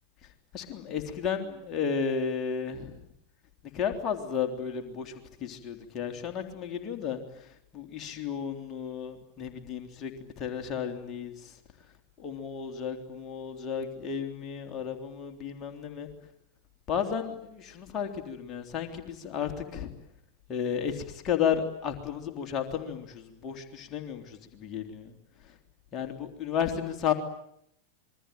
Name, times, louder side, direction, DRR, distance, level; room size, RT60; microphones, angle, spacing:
voice 1, 0.5-3.0 3.7-11.6 12.2-16.1 16.9-19.9 20.5-25.1 25.9-27.1, left 7 dB, 30° left, 4 dB, 3.4 m, -33 dB
27.5 x 22.5 x 9.3 m, 0.72 s
figure-of-eight pair, 90°, 0 cm